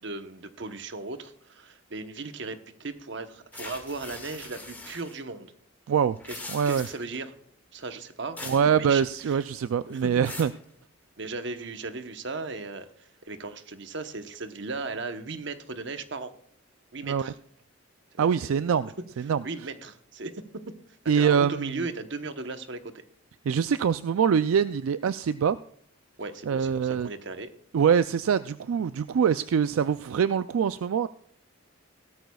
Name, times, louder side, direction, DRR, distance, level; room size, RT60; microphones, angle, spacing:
voice 1, 0.0-5.5 6.3-6.4 6.7-7.3 7.7-9.4 9.9-10.1 11.2-16.3 16.9-17.4 18.1-18.9 19.4-20.3 21.1-22.9 26.2-27.5, right 3 dB, 55° right, 9 dB, 1.0 m, -37 dB
sound 1, 3.5-5.2 6.1-7.2 8.4-8.7 9.0-9.5 9.9-10.6, left 2 dB, 10° left, 1.8 m, -42 dB
voice 2, 6.5-6.9 8.4-10.5 17.0-17.3 18.2-18.9 19.2-19.4 21.1-21.8 23.5-25.6 26.5-27.1 27.7-31.1, right 7 dB, 80° right, 13 dB, 0.3 m, -24 dB
17.0 x 13.0 x 2.3 m, 0.65 s
head